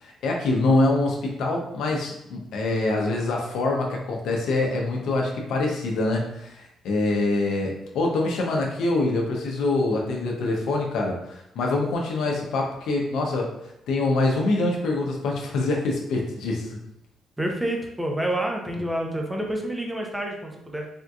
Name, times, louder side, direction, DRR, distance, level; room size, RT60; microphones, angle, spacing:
voice 1, 0.0-13.5 13.9-16.8, left 2 dB, 80° left, 0 dB, 0.6 m, -25 dB
voice 2, 17.4-20.9, right 1 dB, 10° right, 1 dB, 0.6 m, -28 dB
3.5 x 2.6 x 2.4 m, 0.80 s
cardioid pair, 90°, 0 cm